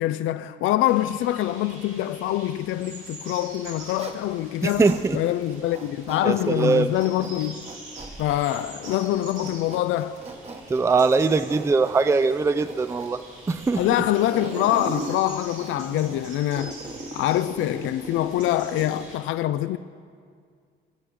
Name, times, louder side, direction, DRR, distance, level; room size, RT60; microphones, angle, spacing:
voice 1, 0.0-7.7 8.2-10.2 13.8-16.8 17.1-19.8, left 13 dB, 85° left, 0.4 m, -25 dB
sound 1, 0.8-19.2, right 2 dB, 90° right, 4.1 m, -45 dB
Zipper (clothing), 3.4-5.0 5.4-19.2, right 2 dB, 30° right, 1.2 m, -39 dB
voice 2, 4.6-5.2 6.2-6.9 10.7-13.2 13.5-13.9, right 4 dB, 15° right, 0.4 m, -21 dB
21.0 x 7.8 x 4.8 m
cardioid pair, 90°, 20 cm